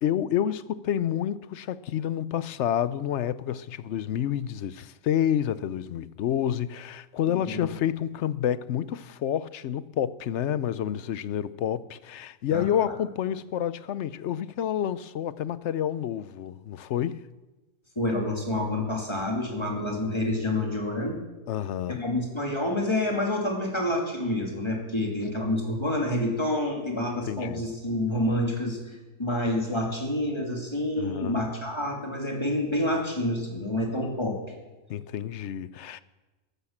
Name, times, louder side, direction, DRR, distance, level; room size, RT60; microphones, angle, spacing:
voice 1, 0.0-17.2 21.5-22.0 27.2-27.6 31.0-31.4 34.9-36.0, left 10 dB, 65° left, 0.8 m, -29 dB
voice 2, 7.3-7.7 12.5-12.7 18.0-21.2 22.0-28.8 29.2-34.4, left 1 dB, 20° left, 2.7 m, -28 dB
13.5 x 11.5 x 7.2 m
omnidirectional pair, 1.4 m